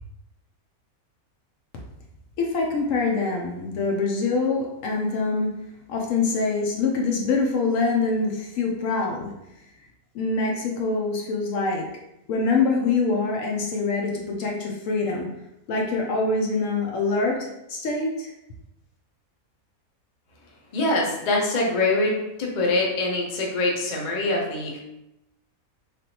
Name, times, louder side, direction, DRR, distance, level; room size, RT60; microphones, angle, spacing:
voice 1, 2.4-5.5 5.9-9.3 10.1-11.9 12.3-15.3 15.7-18.3, left 3 dB, 70° left, 1 dB, 0.9 m, -24 dB
voice 2, 20.7-24.8, left 2 dB, 50° left, -1 dB, 0.6 m, -24 dB
3.3 x 2.4 x 2.8 m, 0.87 s
omnidirectional pair, 1.5 m